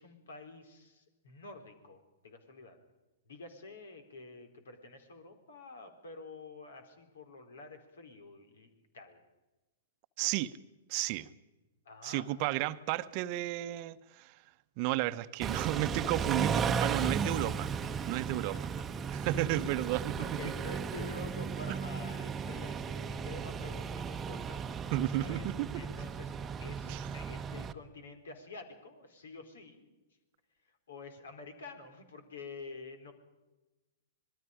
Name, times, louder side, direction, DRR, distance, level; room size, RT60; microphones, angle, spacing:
voice 1, 0.0-2.8 3.3-9.2 11.9-12.3 17.7-17.8 18.5-18.6 19.4-19.7 20.2-24.9 25.2-25.4 25.7-29.9 30.9-33.1, left 3 dB, 70° left, 7 dB, 4.1 m, -49 dB
voice 2, 10.2-10.5 10.9-11.3 12.0-14.3 14.8-17.7 18.0-18.7 19.1-20.2 24.9-25.7 26.9-27.1, right 16 dB, 45° right, 13 dB, 0.9 m, -33 dB
Car / Idling / Accelerating revving vroom, 15.4-27.7, right 6 dB, 20° right, 1.0 m, -35 dB
26.0 x 21.0 x 5.1 m, 1.1 s
hypercardioid pair, 110°, 0 cm